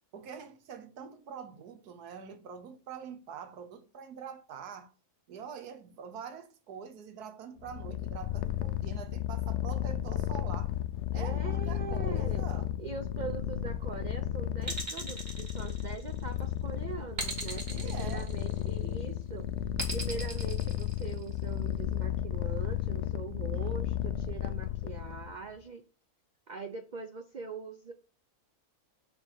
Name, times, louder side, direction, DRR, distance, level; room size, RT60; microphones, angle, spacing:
voice 1, 0.1-4.9 5.3-10.7 11.1-12.7 17.7-18.3 23.5-23.9, right 7 dB, 90° right, 1.5 m, -45 dB
Purr, 7.6-25.4, left 12 dB, 65° left, 0.7 m, -33 dB
voice 2, 11.1-12.5 12.8-19.5 19.9-25.9 26.5-27.9, right 5 dB, 65° right, 0.4 m, -42 dB
sound 1, 14.6-16.3 17.2-18.8 19.8-21.4, right 2 dB, 40° right, 2.0 m, -38 dB
7.0 x 3.5 x 6.3 m
omnidirectional pair, 1.6 m